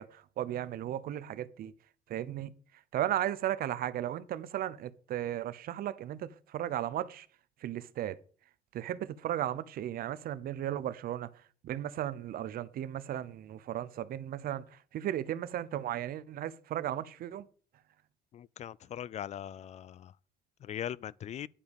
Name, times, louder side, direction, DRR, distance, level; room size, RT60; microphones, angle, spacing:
voice 1, 0.0-1.7 2.1-2.5 2.9-7.3 7.6-8.2 8.7-11.3 11.6-14.7 14.9-17.5, right 12 dB, 60° right, 0.7 m, -35 dB
voice 2, 18.3-20.1 20.6-21.5, left 10 dB, 40° left, 0.4 m, -40 dB
10.0 x 5.0 x 7.1 m
cardioid pair, 110°, 17 cm